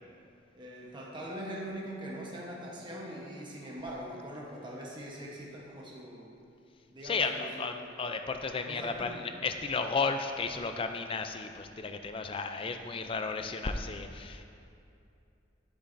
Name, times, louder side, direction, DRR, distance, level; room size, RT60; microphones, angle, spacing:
voice 1, 0.5-6.3 6.9-7.7 8.7-9.5, equal, 25° right, -4 dB, 1.0 m, -42 dB
voice 2, 7.0-14.5, left 4 dB, 30° left, 7 dB, 0.4 m, -33 dB
8.8 x 8.5 x 2.6 m, 2.6 s
head